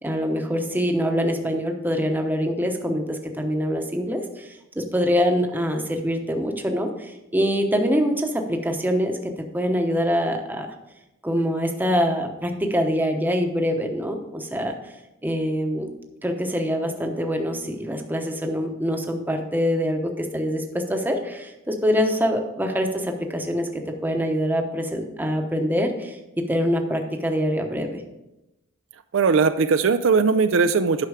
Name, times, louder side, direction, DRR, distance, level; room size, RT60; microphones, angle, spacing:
voice 1, 0.0-10.7 11.2-14.9 15.2-15.9 16.2-23.7 24.0-26.2 26.5-28.0, equal, 10° right, 4 dB, 0.9 m, -24 dB
voice 2, 29.1-31.1, right 5 dB, 65° right, 10 dB, 0.4 m, -19 dB
9.7 x 6.0 x 4.9 m, 0.96 s
head